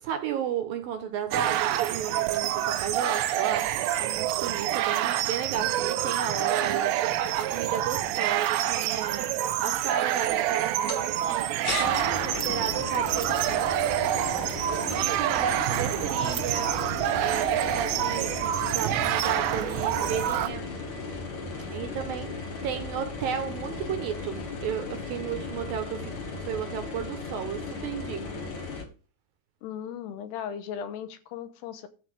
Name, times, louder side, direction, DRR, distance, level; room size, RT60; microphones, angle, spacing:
voice 1, 0.0-3.7 4.0-9.3 9.6-11.5 11.8-13.7 14.9-16.7 17.1-20.7 21.7-28.4, right 8 dB, 70° right, 2.5 m, -34 dB
sound 1, 1.3-20.5, right 12 dB, 90° right, 3.0 m, -27 dB
sound 2, 10.9-11.0 11.6-28.8, left 4 dB, 50° left, 3.2 m, -36 dB
voice 2, 29.6-31.9, left 8 dB, 75° left, 2.9 m, -37 dB
12.5 x 4.5 x 7.8 m
omnidirectional pair, 5.0 m